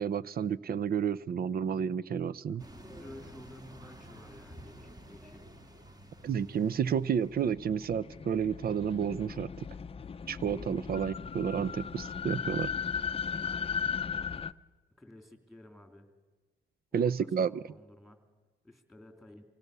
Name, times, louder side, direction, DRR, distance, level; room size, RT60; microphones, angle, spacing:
voice 1, 0.0-2.6 6.2-9.5 10.3-12.7 16.9-17.6, right 7 dB, 50° right, 20 dB, 0.7 m, -31 dB
voice 2, 2.5-5.4 13.4-13.7 15.0-16.1 16.9-18.2 18.6-19.4, left 1 dB, ahead, 6 dB, 3.3 m, -52 dB
sound 1, 2.6-7.6, equal, 20° right, 1.9 m, -51 dB
sound 2, 7.0-14.5, left 6 dB, 30° left, 0.6 m, -37 dB
25.0 x 17.0 x 6.8 m, 1.3 s
cardioid pair, 90°, 20 cm